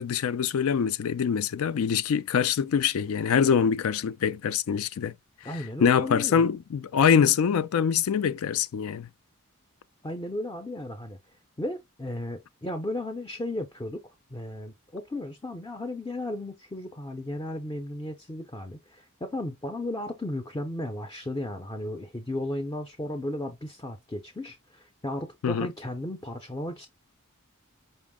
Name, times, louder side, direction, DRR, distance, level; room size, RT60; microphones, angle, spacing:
voice 1, 0.0-5.1 5.8-9.1 25.4-25.7, left 7 dB, 70° left, 0.4 m, -24 dB
voice 2, 5.4-6.4 10.0-11.2 11.6-14.0 14.3-26.9, left 1 dB, 15° left, 0.5 m, -35 dB
5.3 x 2.0 x 3.6 m
head